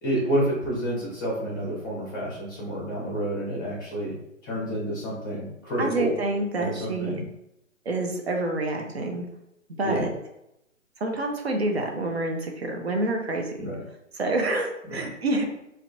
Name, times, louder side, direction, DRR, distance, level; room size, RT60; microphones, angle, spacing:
voice 1, 0.0-4.1 4.4-6.1 6.6-7.2 9.8-10.1 13.6-13.8 14.9-15.0, equal, 15° left, -5 dB, 0.6 m, -29 dB
voice 2, 5.8-7.2 7.9-9.2 9.8-10.1 11.0-13.5 14.1-15.4, right 2 dB, 50° right, 2 dB, 0.5 m, -27 dB
2.2 x 2.1 x 2.7 m, 0.83 s
figure-of-eight pair, 145°, 40 cm